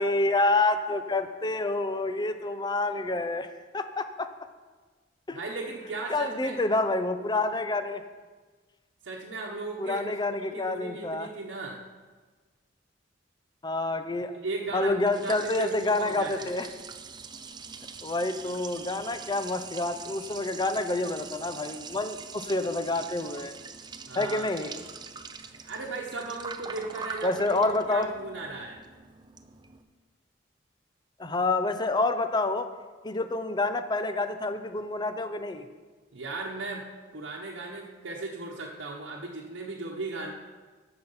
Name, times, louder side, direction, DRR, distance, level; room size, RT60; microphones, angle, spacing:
voice 1, 0.0-3.5 3.7-4.3 5.3-5.4 6.1-8.0 9.8-11.3 13.6-14.3 14.7-16.7 18.0-23.5 24.1-24.7 27.2-28.1 31.2-32.7 33.0-35.7, left 2 dB, 25° left, 9 dB, 0.6 m, -28 dB
voice 2, 5.3-6.6 9.0-10.0 10.3-11.8 14.3-16.6 24.1-24.5 25.6-27.6 27.9-28.8 36.1-36.9 37.1-40.3, right 3 dB, 85° right, -3 dB, 1.0 m, -37 dB
Liquid, 14.7-29.8, right 5 dB, 25° right, 0.6 m, -43 dB
14.5 x 6.0 x 5.6 m, 1.4 s
head